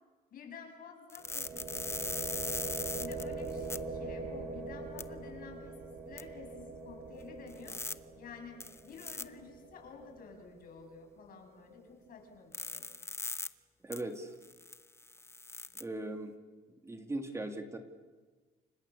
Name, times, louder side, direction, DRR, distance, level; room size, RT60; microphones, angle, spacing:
voice 1, 0.3-2.6 3.0-7.8 8.2-12.9, left 5 dB, 60° left, 5 dB, 7.1 m, -51 dB
sound 1, 1.1-3.8 5.0-5.1 6.2-6.3 7.5-7.9 8.6-9.2 12.5-13.5 13.9-14.0 14.4-15.8, left 3 dB, 15° left, 1.0 m, -39 dB
sound 2, 1.2-11.0, right 3 dB, 50° right, 6.6 m, -43 dB
voice 2, 13.8-14.3 15.7-16.3 16.8-17.8, right 2 dB, 15° right, 5 dB, 2.5 m, -39 dB
30.0 x 25.5 x 7.1 m, 1.3 s
cardioid pair, 110°, 17 cm